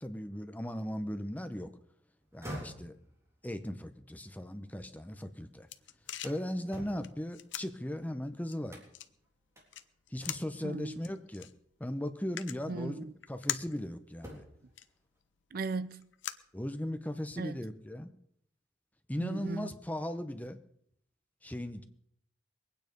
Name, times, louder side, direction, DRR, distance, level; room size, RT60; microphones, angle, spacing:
voice 1, 0.0-1.7 2.3-3.0 3.4-5.7 6.2-8.8 10.1-11.5 11.8-14.4 16.5-18.1 19.1-20.6 21.4-21.8, left 1 dB, 10° left, 0.8 m, -38 dB
sound 1, 2.2-5.3 5.7-8.1 8.7-9.1 9.6-9.7 10.2-10.7 11.9-12.1 12.7-13.8 14.1-14.7, equal, 15° right, 3.5 m, -49 dB
sound 2, 5.1-17.2, left 11 dB, 85° left, 0.7 m, -45 dB
voice 2, 10.6-11.0 12.7-13.1 15.5-16.1 17.4-17.6 19.2-19.7, right 3 dB, 50° right, 0.5 m, -37 dB
22.0 x 9.4 x 5.2 m
head